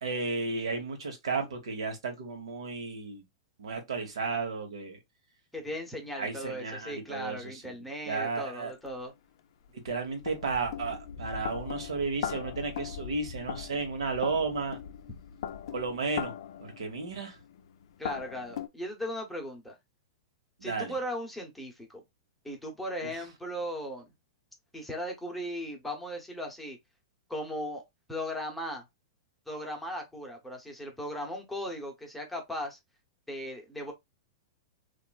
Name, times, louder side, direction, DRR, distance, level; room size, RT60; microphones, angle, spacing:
voice 1, 0.0-3.2 3.6-5.0 6.2-7.4 8.1-8.7 9.8-14.8 15.7-16.3 16.6-17.3 20.6-20.9 23.0-23.1, right 4 dB, 90° right, 1.0 m, -33 dB
voice 2, 5.5-9.1 18.0-19.8 20.6-22.0 22.4-24.1 24.7-26.8 27.3-27.8 28.1-28.8 29.5-32.8 33.3-33.9, equal, 5° left, 0.8 m, -37 dB
sound 1, 8.9-9.0 9.6-18.7, left 9 dB, 65° left, 0.4 m, -40 dB
2.9 x 2.4 x 2.2 m
hypercardioid pair, 135°, 3 cm